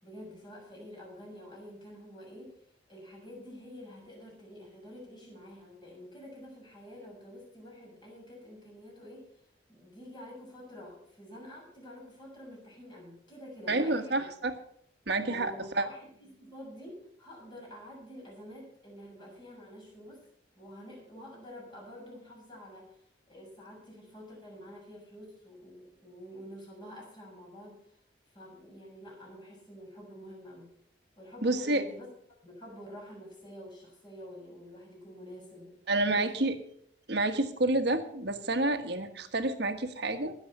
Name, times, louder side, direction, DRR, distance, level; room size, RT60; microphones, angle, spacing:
voice 1, 0.0-2.5 2.9-9.3 9.7-14.2 15.3-20.2 20.6-27.7 28.3-30.7 31.2-32.1 32.4-35.7 36.1-36.2, equal, 25° left, -2 dB, 6.8 m, -48 dB
voice 2, 13.7-14.5 15.1-15.9 31.4-31.8 35.9-36.6 37.1-40.3, right 2 dB, 60° right, 7 dB, 1.5 m, -29 dB
20.0 x 7.4 x 5.6 m, 0.68 s
head